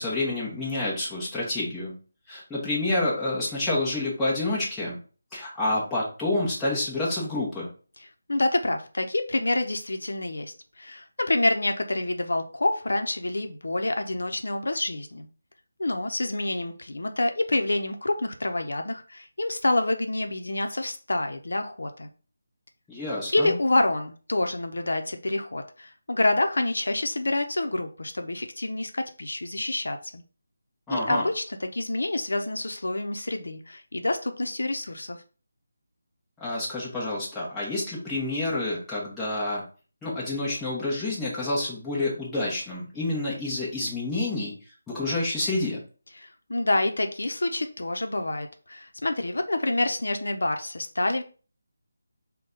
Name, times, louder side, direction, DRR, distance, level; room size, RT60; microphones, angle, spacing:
voice 1, 0.0-2.0 2.3-5.0 5.3-7.7 22.9-23.5 30.9-31.3 36.4-39.6 40.0-44.5 44.9-45.8, left 2 dB, 5° left, -8 dB, 0.9 m, -28 dB
voice 2, 8.3-15.3 15.8-22.1 23.3-30.2 30.9-35.2 46.2-51.2, left 2 dB, 85° left, 6 dB, 0.6 m, -27 dB
3.9 x 2.2 x 3.7 m, 0.37 s
figure-of-eight pair, 170°, 0 cm